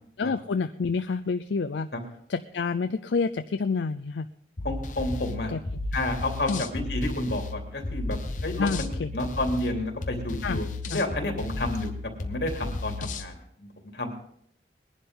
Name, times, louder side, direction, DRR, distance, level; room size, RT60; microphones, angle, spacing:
voice 1, 0.2-1.9 2.3-4.3 5.5-5.6 6.5-6.6 8.6-9.1 10.4-10.6 10.9-11.0, left 4 dB, 85° left, 9 dB, 0.5 m, -28 dB
voice 2, 4.6-5.5 5.9-8.2 8.4-8.9 9.1-11.9 12.2-13.3 13.6-13.7 13.9-14.1, left 1 dB, 70° left, 2 dB, 3.0 m, -30 dB
sound 1, 4.6-13.3, left 2 dB, 45° left, 1.0 m, -34 dB
20.5 x 11.0 x 3.8 m, 0.65 s
head